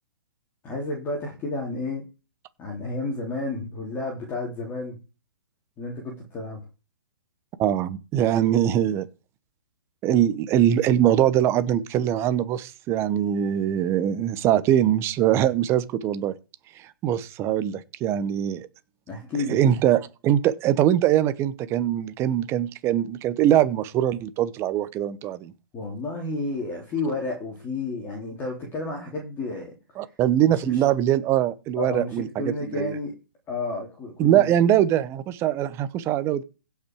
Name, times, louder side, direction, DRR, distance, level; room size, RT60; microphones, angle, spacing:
voice 1, 0.6-2.1 2.6-5.0 5.8-6.6 19.1-19.7 25.7-29.7 30.5-30.8 31.8-33.1 33.5-34.6, left 3 dB, 20° left, 3.5 m, -31 dB
voice 2, 7.6-9.1 10.0-16.3 16.8-18.7 19.5-25.5 30.0-32.9 34.2-36.4, right 11 dB, 20° right, 1.0 m, -22 dB
16.5 x 5.8 x 4.8 m
hypercardioid pair, 135°, 12 cm